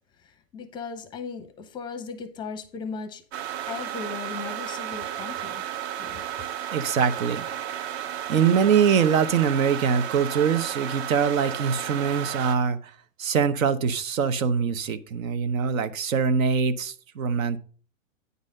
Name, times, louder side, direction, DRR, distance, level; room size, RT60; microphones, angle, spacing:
voice 1, 0.2-3.2 3.7-5.6 6.0-6.2, left 5 dB, 10° left, 0.6 m, -37 dB
sound 1, 3.3-12.6, right 10 dB, 50° right, 0.8 m, -33 dB
voice 2, 6.7-7.4 8.3-12.9 13.2-17.6, right 6 dB, 85° right, 1.0 m, -23 dB
9.6 x 4.1 x 6.4 m
hypercardioid pair, 150°, 39 cm